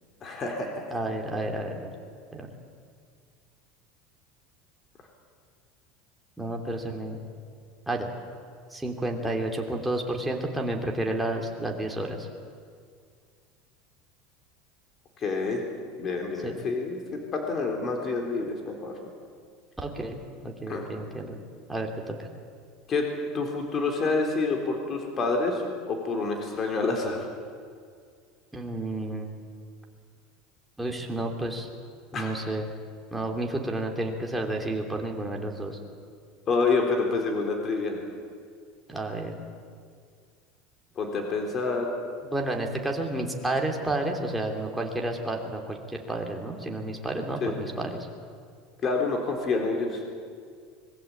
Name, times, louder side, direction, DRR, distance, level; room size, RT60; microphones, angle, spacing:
voice 1, 0.2-1.0 15.2-15.6 16.0-17.0 17.3-18.9 20.7-20.9 22.9-23.1 23.3-27.3 32.1-32.3 36.5-38.0 41.0-41.9 47.4-47.5 48.8-50.0, left 3 dB, 30° left, 2 dB, 3.8 m, -28 dB
voice 2, 0.9-1.9 2.3-2.5 6.4-7.3 7.9-8.1 8.7-12.3 16.4-16.5 19.8-21.4 21.7-22.3 28.5-29.3 30.8-31.7 32.1-32.7 33.1-35.8 38.9-39.4 42.3-47.9, right 1 dB, 5° right, 1 dB, 3.0 m, -31 dB
25.0 x 21.0 x 8.7 m, 2.1 s
supercardioid pair, 145°, 0 cm